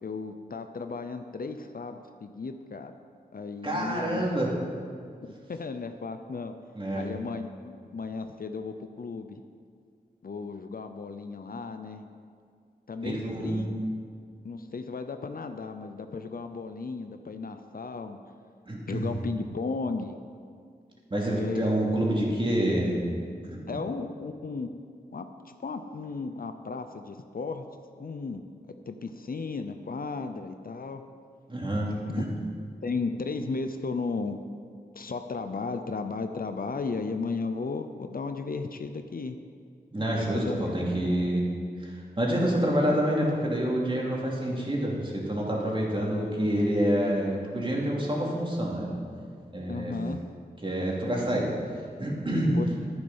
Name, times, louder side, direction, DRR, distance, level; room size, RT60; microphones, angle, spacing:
voice 1, 0.0-2.9 3.3-4.5 5.2-6.5 6.9-9.4 10.2-12.0 12.9-13.7 14.4-18.2 18.9-20.2 21.4-21.7 23.7-24.7 25.1-27.6 28.0-28.4 28.9-31.0 32.1-32.2 32.8-34.4 34.9-39.4 40.2-41.2 49.7-50.2 52.5-52.8, left 4 dB, 60° left, 8 dB, 0.7 m, -35 dB
voice 2, 3.6-4.5 6.7-7.1 13.0-13.6 18.7-19.1 21.1-23.0 23.4-23.6 31.5-32.2 39.9-41.4 41.8-48.9 49.5-49.9 50.6-51.5 52.0-52.6, right 1 dB, 30° right, -3 dB, 2.9 m, -27 dB
11.0 x 9.6 x 5.6 m, 2.2 s
wide cardioid pair, 55°, 17 cm